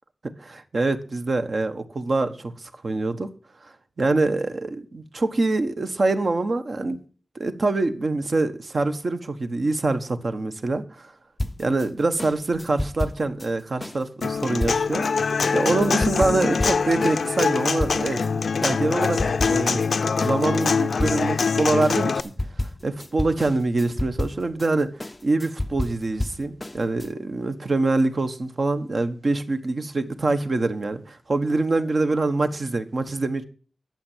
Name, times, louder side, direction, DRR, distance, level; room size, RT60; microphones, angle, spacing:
voice 1, 0.4-3.3 3.6-7.0 7.3-11.1 11.6-19.2 19.5-19.9 20.2-22.3 22.6-24.9 25.2-33.4, right 2 dB, 50° right, 1.3 m, -25 dB
sound 1, 11.4-18.3 18.6-19.9 20.2-27.1, left 1 dB, 20° left, 0.5 m, -32 dB
Human voice / Acoustic guitar, 14.2-22.2, left 5 dB, 75° left, 0.6 m, -23 dB
12.0 x 7.4 x 7.4 m
wide cardioid pair, 125°, 0 cm